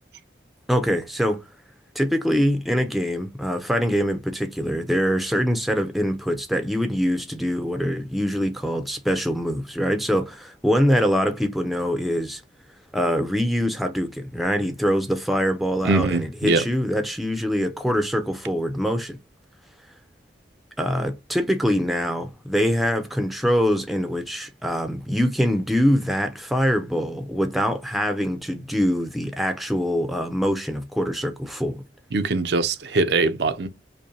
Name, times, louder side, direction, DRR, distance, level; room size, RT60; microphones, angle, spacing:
voice 1, 0.7-1.4 2.0-12.4 12.9-19.2 20.8-31.8, equal, ahead, 0.5 m, -24 dB
voice 2, 15.8-16.6 32.1-33.7, right 3 dB, 60° right, 0.5 m, -22 dB
5.2 x 2.2 x 2.8 m
head